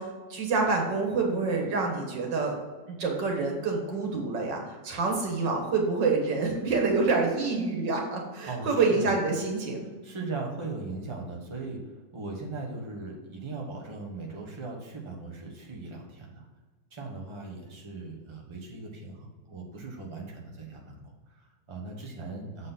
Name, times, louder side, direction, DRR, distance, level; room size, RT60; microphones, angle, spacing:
voice 1, 0.0-2.6 2.9-9.9, right 4 dB, 90° right, 1 dB, 2.1 m, -27 dB
voice 2, 8.4-9.2 10.0-16.4 16.9-22.7, right 3 dB, 20° right, -1 dB, 1.1 m, -39 dB
7.5 x 4.1 x 5.5 m, 1.3 s
omnidirectional pair, 1.9 m